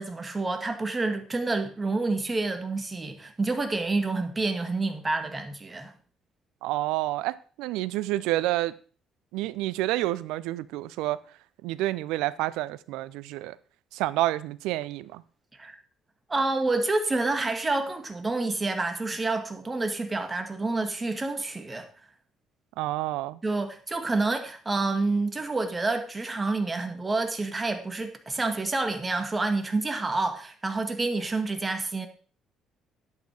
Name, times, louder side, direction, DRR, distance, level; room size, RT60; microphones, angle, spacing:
voice 1, 0.0-5.9 15.6-15.8 16.3-21.9 23.4-32.1, right 3 dB, 25° right, 2.1 m, -28 dB
voice 2, 6.6-8.7 9.3-11.2 11.6-13.6 13.9-15.2 22.8-23.4, right 16 dB, 75° right, 0.5 m, -29 dB
10.5 x 8.7 x 4.7 m
hypercardioid pair, 50°, 0 cm